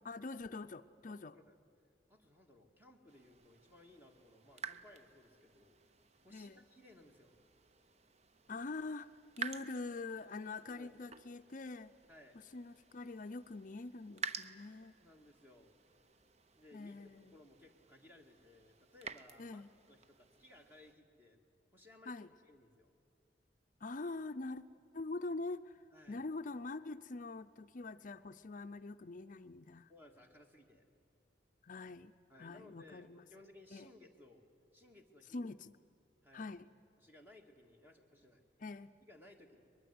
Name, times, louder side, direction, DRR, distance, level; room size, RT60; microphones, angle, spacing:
voice 1, 0.0-1.4 6.3-6.6 8.5-11.9 12.5-15.0 16.7-17.4 19.4-19.7 22.1-22.3 23.8-24.6 24.9-29.9 31.6-32.1 32.4-33.3 33.7-33.9 35.3-35.7 36.3-36.7 38.6-38.9, left 3 dB, 45° left, 10 dB, 0.5 m, -44 dB
voice 2, 1.1-1.6 2.1-5.8 6.2-7.4 10.6-10.9 12.1-12.4 15.0-15.7 16.6-21.4 21.7-22.9 25.9-26.2 29.9-30.8 32.3-34.4 34.7-35.5 36.2-36.5 37.0-38.4 39.0-39.7, left 1 dB, 10° right, 3 dB, 1.9 m, -61 dB
sound 1, 3.1-20.9, right 5 dB, 35° right, 0.7 m, -51 dB
23.0 x 21.5 x 9.6 m, 2.4 s
head